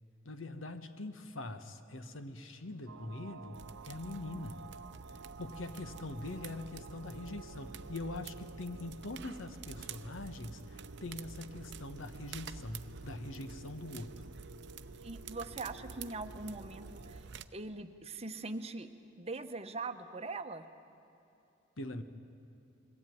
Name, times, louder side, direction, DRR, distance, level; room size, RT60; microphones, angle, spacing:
voice 1, 0.2-3.6 3.8-4.7 5.4-14.3 21.8-22.0, left 2 dB, 80° left, 9 dB, 1.2 m, -43 dB
sound 1, 2.9-17.2, right 4 dB, 80° right, 0.9 m, -54 dB
sound 2, 3.5-17.5, right 5 dB, 60° right, 0.6 m, -49 dB
voice 2, 15.0-17.2 17.5-18.9 19.2-20.7, right 3 dB, 30° right, 8 dB, 0.9 m, -41 dB
22.0 x 16.0 x 9.2 m, 2.8 s
head